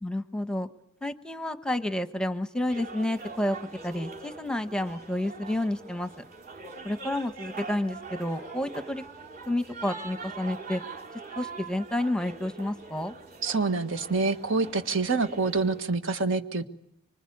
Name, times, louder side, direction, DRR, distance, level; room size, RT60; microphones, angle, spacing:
voice 1, 0.0-0.7 1.0-3.6 3.8-6.1 6.8-9.0 9.5-10.8 11.4-13.1, left 1 dB, 5° left, 9 dB, 1.0 m, -30 dB
sound 1, 2.7-15.8, right 4 dB, 45° right, 3.3 m, -43 dB
voice 2, 13.4-16.6, right 4 dB, 70° right, 8 dB, 1.6 m, -26 dB
25.5 x 24.5 x 8.5 m, 0.75 s
head